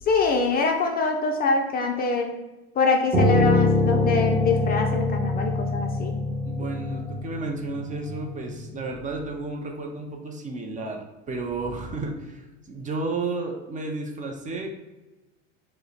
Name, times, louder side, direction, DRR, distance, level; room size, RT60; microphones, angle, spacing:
voice 1, 0.1-2.3 2.8-6.2, left 4 dB, 30° left, 3 dB, 0.4 m, -24 dB
Piano, 3.1-8.4, left 2 dB, ahead, 1.0 m, -24 dB
voice 2, 6.4-12.4 12.7-14.7, right 3 dB, 25° right, 2 dB, 0.5 m, -32 dB
4.5 x 2.1 x 3.2 m, 1.1 s
hypercardioid pair, 100°, 33 cm